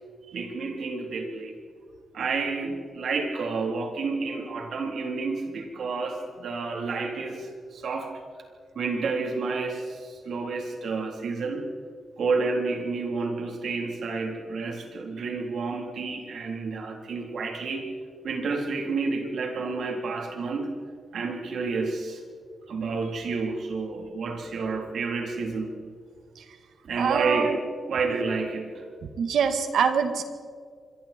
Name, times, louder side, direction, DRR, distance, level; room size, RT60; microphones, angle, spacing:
voice 1, 0.3-1.6 2.1-8.1 8.7-11.6 12.2-17.9 18.2-20.7 21.1-22.2 22.7-25.7 26.8-27.5 27.9-28.8, right 4 dB, 70° right, 2 dB, 3.8 m, -30 dB
voice 2, 27.0-27.6 29.2-30.2, right 6 dB, 90° right, 8 dB, 2.0 m, -24 dB
26.0 x 24.0 x 4.6 m, 2.1 s
wide cardioid pair, 150°, 0 cm